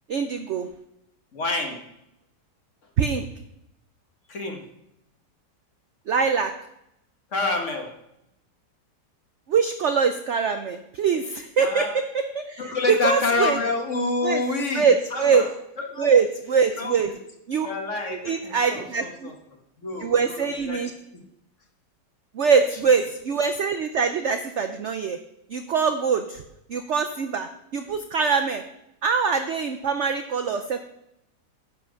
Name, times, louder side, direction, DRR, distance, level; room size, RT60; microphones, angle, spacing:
voice 1, 0.1-0.7 3.0-3.2 6.1-6.5 9.5-13.6 14.2-14.4 14.7-15.5 16.0-17.1 17.5-17.7 18.2-19.3 20.0-20.9 22.3-25.2 25.5-26.4 26.7-28.6 29.0-30.8, right 6 dB, 65° right, 7 dB, 0.7 m, -23 dB
voice 2, 1.3-1.8 4.3-4.6 7.3-7.9 11.6-11.9 12.6-16.1 16.7-17.0 17.6-19.3 19.8-20.8 21.1-21.2 22.4-22.6, left 3 dB, 45° left, 3 dB, 1.7 m, -28 dB
10.5 x 5.7 x 6.4 m, 0.82 s
omnidirectional pair, 1.9 m